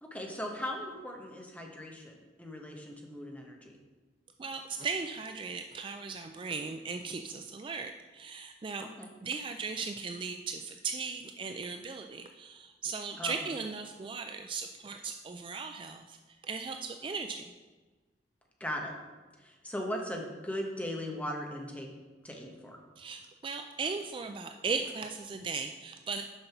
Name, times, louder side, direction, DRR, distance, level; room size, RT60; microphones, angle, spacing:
voice 1, 0.0-3.7 8.8-9.1 13.2-13.4 18.6-18.9 19.4-21.9 22.2-22.8, equal, 10° left, 1 dB, 1.1 m, -38 dB
voice 2, 4.4-8.9 9.2-16.2 16.4-17.4 23.0-26.2, right 5 dB, 30° right, 6 dB, 0.3 m, -37 dB
6.8 x 5.4 x 5.8 m, 1.3 s
head